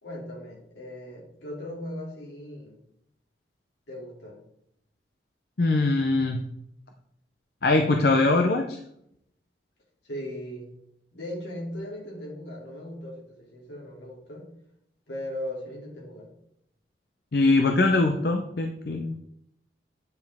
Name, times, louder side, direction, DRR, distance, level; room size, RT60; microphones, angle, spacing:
voice 1, 0.0-2.8 3.9-4.4 10.0-10.8 11.1-14.5 15.1-16.3, left 1 dB, 80° left, -3 dB, 2.8 m, -38 dB
voice 2, 5.6-6.4 7.6-8.8 17.3-19.1, left 2 dB, 60° left, 4 dB, 0.6 m, -22 dB
9.4 x 5.2 x 3.5 m, 0.76 s
head